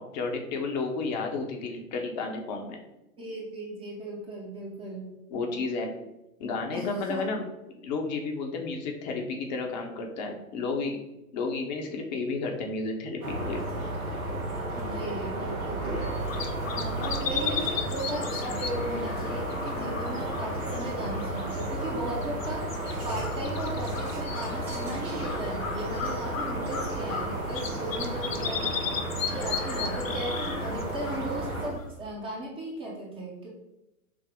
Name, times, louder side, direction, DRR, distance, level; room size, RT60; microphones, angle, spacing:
voice 1, 0.1-2.8 5.3-5.9 6.4-7.4 7.7-11.0 11.3-13.6, left 3 dB, 30° left, 2 dB, 0.6 m, -32 dB
voice 2, 3.2-5.1 6.7-7.2 14.8-15.9 16.8-22.7 23.0-28.8 29.3-33.5, right 1 dB, 15° right, -2 dB, 0.6 m, -36 dB
sound 1, 13.2-31.7, right 1 dB, 85° right, 1.2 m, -33 dB
sound 2, 15.9-32.0, left 6 dB, 65° left, 0.7 m, -37 dB
5.9 x 2.0 x 3.5 m, 0.93 s
figure-of-eight pair, 105°, 42 cm